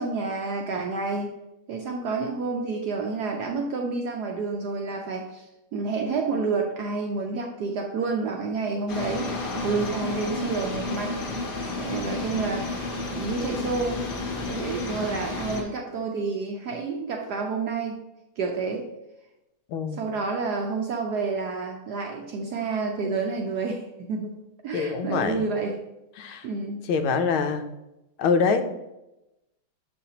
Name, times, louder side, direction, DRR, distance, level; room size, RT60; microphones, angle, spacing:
voice 1, 0.0-1.3 1.7-5.5 5.7-11.1 11.8-12.9 13.1-14.0 14.4-18.0 18.4-18.9 20.0-24.4 24.6-25.8 26.4-26.8, right 4 dB, 70° right, 2 dB, 1.0 m, -29 dB
sound 1, 8.9-15.6, left 2 dB, 40° left, 1.2 m, -31 dB
voice 2, 19.7-20.1 24.7-25.5 26.2-26.5 26.9-27.7 28.2-28.6, left 5 dB, 80° left, 8 dB, 1.4 m, -24 dB
7.0 x 5.7 x 2.8 m, 0.94 s
omnidirectional pair, 2.3 m